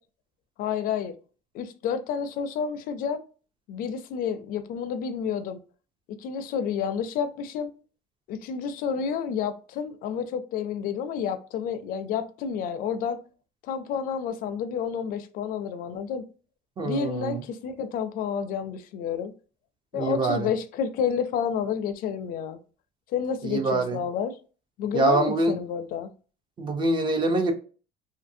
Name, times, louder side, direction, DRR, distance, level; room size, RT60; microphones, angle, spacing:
voice 1, 0.6-1.1 1.5-3.2 3.7-5.6 6.1-7.7 8.3-13.2 13.7-16.2 16.8-19.3 19.9-22.6 23.1-24.3 24.8-26.1, left 7 dB, 55° left, 0.4 m, -30 dB
voice 2, 16.8-17.4 19.9-20.5 23.4-24.0 24.9-25.6 26.6-27.5, right 2 dB, 30° right, 0.5 m, -25 dB
2.6 x 2.5 x 2.6 m
cardioid pair, 150°, 17 cm